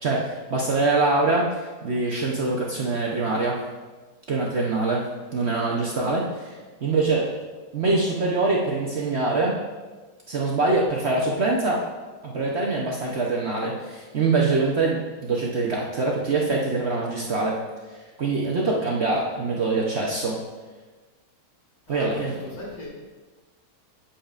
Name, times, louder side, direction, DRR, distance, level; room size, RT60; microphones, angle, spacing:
voice 1, 0.0-3.6 4.3-7.3 7.7-9.6 10.3-11.8 12.2-17.6 18.2-20.4 21.9-22.3, right 3 dB, 50° right, -2 dB, 0.8 m, -24 dB
voice 2, 21.9-22.9, left 1 dB, 80° left, -5 dB, 3.2 m, -38 dB
8.8 x 8.3 x 2.5 m, 1.3 s
omnidirectional pair, 1.9 m